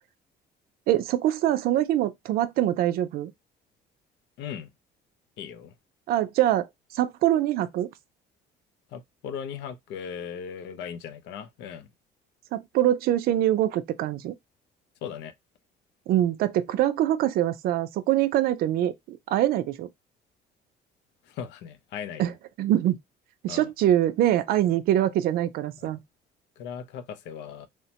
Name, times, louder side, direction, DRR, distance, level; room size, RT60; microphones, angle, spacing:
voice 1, 0.9-3.3 6.1-6.7 6.9-7.9 12.5-14.3 16.1-19.9 22.2-22.3 22.6-23.0 23.4-26.0, right 12 dB, 60° right, 0.4 m, -24 dB
voice 2, 4.4-4.7 5.4-5.7 8.9-11.9 15.0-15.3 21.3-22.4 23.5-23.7 26.6-27.7, left 8 dB, 90° left, 0.5 m, -38 dB
3.1 x 2.1 x 2.8 m
cardioid pair, 165°, 18 cm